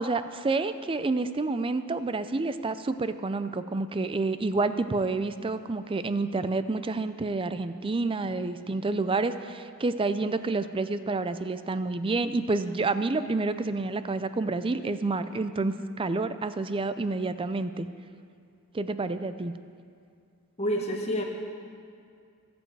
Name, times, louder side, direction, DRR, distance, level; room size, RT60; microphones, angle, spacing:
voice 1, 0.0-17.9 18.7-19.6, right 3 dB, 25° right, 12 dB, 0.5 m, -29 dB
voice 2, 20.6-21.2, equal, 30° left, 1 dB, 1.5 m, -28 dB
22.0 x 7.9 x 4.7 m, 2.3 s
head